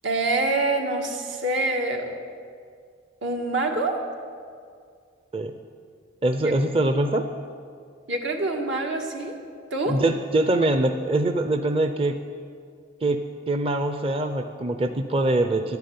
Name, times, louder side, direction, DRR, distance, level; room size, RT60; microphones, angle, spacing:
voice 1, 0.0-2.1 3.2-4.0 6.4-6.6 8.1-9.4 9.7-10.0, right 2 dB, 80° right, 2 dB, 1.9 m, -26 dB
voice 2, 6.2-7.2 9.9-12.2 13.0-13.2 13.5-15.8, right 2 dB, 30° right, 7 dB, 0.6 m, -23 dB
12.5 x 10.5 x 9.4 m, 2.2 s
head